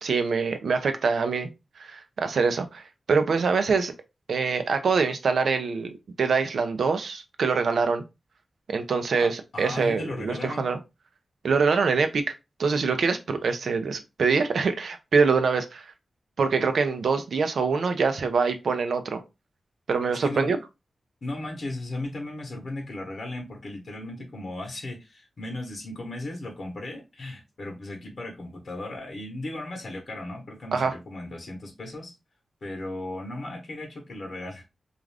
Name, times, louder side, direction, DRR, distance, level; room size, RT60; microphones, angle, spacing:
voice 1, 0.0-1.5 1.8-3.9 4.3-8.0 8.7-10.8 11.4-12.2 12.6-15.9 16.4-19.2 19.9-20.6 30.7-30.9, right 5 dB, 80° right, 0.5 m, -24 dB
voice 2, 9.5-10.6 20.1-20.5 21.2-32.1 32.6-34.6, left 2 dB, 60° left, 0.8 m, -36 dB
2.4 x 2.4 x 3.2 m
wide cardioid pair, 105°, 0 cm